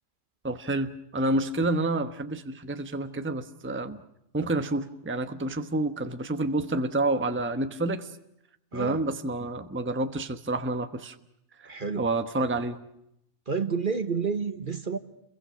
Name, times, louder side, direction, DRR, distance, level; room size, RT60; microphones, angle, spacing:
voice 1, 0.4-4.0 4.3-8.1 8.7-11.2 11.6-11.7 11.9-12.8, right 2 dB, 10° right, 9 dB, 1.0 m, -29 dB
voice 2, 8.7-9.0 11.6-12.1 13.5-15.0, right 5 dB, 40° right, 10 dB, 1.3 m, -29 dB
29.5 x 22.5 x 6.3 m, 0.79 s
omnidirectional pair, 1.4 m